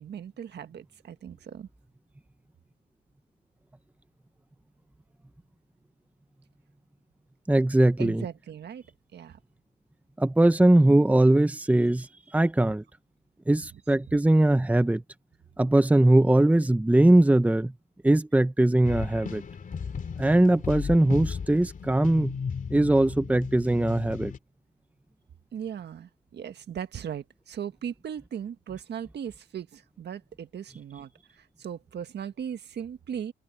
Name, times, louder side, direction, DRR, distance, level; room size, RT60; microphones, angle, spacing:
voice 1, 0.0-1.7 8.0-8.8 9.1-9.4 14.1-14.2 25.5-33.3, right 8 dB, 60° right, 1.7 m, -38 dB
voice 2, 7.5-8.2 10.2-12.1 12.3-12.8 13.5-15.0 15.6-17.7 18.0-19.4 20.2-22.4 22.7-24.3, right 1 dB, 5° right, 1.1 m, -21 dB
sound 1, 18.8-24.4, left 6 dB, 45° left, 2.7 m, -35 dB
cardioid pair, 90°, 20 cm